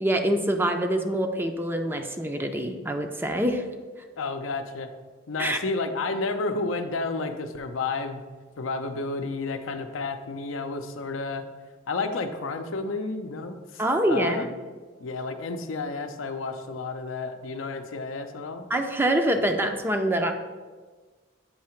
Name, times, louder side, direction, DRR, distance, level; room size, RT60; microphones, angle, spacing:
voice 1, 0.0-3.7 5.4-5.6 13.8-14.5 18.7-20.3, right 1 dB, 10° right, 5 dB, 0.5 m, -25 dB
voice 2, 4.2-4.9 5.3-8.2 8.6-11.4 11.9-13.8 14.1-14.4 15.0-18.7, left 3 dB, 75° left, 7 dB, 0.6 m, -31 dB
8.4 x 2.8 x 5.7 m, 1.4 s
head